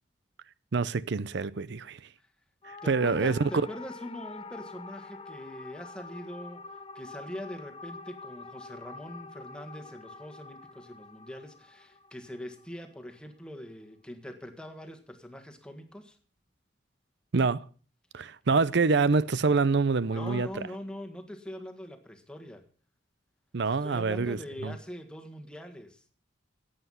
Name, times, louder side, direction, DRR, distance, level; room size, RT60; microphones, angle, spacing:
voice 1, 0.7-2.0 2.6-3.5 17.3-17.6 18.1-20.7 23.5-24.7, right 4 dB, 60° right, 0.6 m, -26 dB
sound 1, 2.6-13.1 20.1-20.4, left 3 dB, 30° left, 0.7 m, -46 dB
voice 2, 2.8-6.6 6.9-16.2 20.1-22.6 23.6-26.0, equal, 5° left, 1.6 m, -43 dB
17.5 x 8.0 x 5.7 m
head